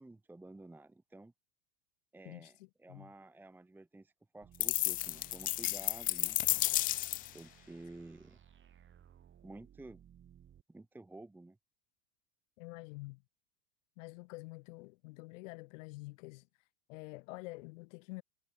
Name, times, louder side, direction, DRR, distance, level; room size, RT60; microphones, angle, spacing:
voice 1, 0.0-1.3 2.1-6.4 7.3-8.4 9.4-10.0 10.7-11.6, right 2 dB, 5° right, 1.1 m, -52 dB
voice 2, 2.2-3.1 12.6-13.2 14.0-16.5 16.9-18.2, left 25 dB, 60° left, 3.2 m, -48 dB
sound 1, 4.4-10.6, right 10 dB, 25° right, 5.6 m, -60 dB
sound 2, 4.6-7.4, left 17 dB, 20° left, 0.4 m, -32 dB
supercardioid pair, 130°, 43 cm